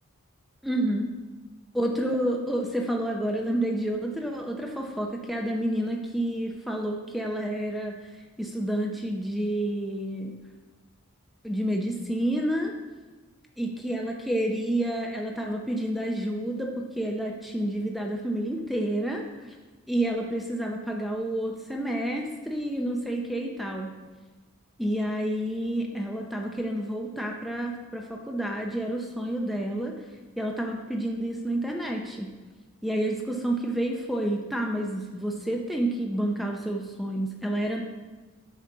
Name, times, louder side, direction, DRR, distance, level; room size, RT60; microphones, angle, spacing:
voice 1, 0.6-1.1 1.7-7.9 8.4-10.3 11.4-12.7 13.6-19.3 19.9-23.9 24.8-29.9 30.4-32.3 32.8-37.8, right 1 dB, ahead, 1 dB, 0.6 m, -29 dB
8.1 x 5.3 x 3.8 m, 1.3 s
head